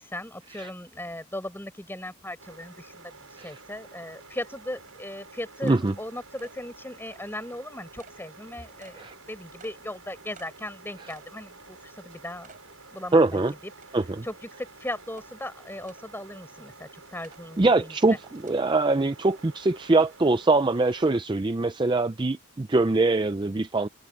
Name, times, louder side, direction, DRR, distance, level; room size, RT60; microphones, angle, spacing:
voice 1, 0.0-12.5 12.9-13.7 14.2-18.2, left 1 dB, 10° left, 5.1 m, -38 dB
sound 1, 2.4-21.2, right 3 dB, 75° right, 7.6 m, -50 dB
sound 2, 3.7-3.8 4.4-4.5 4.9-5.0 5.7-5.8 6.4-6.6 7.1-7.2 8.0-8.2 8.8-9.0 9.6-9.8 10.4-10.5 11.1-11.3 11.8-11.9 12.4-12.6 13.1-13.2 13.8-14.2 15.2-15.3 15.9-16.0 17.2-17.4 18.5-18.6, right 5 dB, 35° right, 7.4 m, -53 dB
voice 2, 5.6-5.9 9.0-9.1 13.1-13.5 13.9-14.2 17.6-23.9, right 2 dB, 20° right, 0.4 m, -23 dB
head